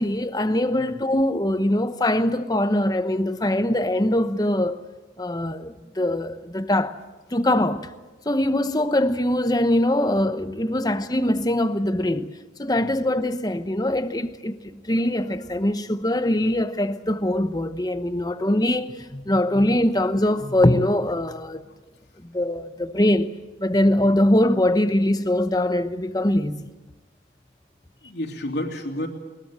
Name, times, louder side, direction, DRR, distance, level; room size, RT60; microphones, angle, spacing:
voice 1, 0.0-4.8 5.2-7.0 7.3-7.9 8.3-12.3 12.6-21.6 22.2-23.3 23.6-26.7, left 1 dB, 20° left, 0.9 m, -22 dB
voice 2, 28.0-29.1, left 1 dB, 65° left, 3.2 m, -31 dB
22.0 x 21.0 x 7.7 m
head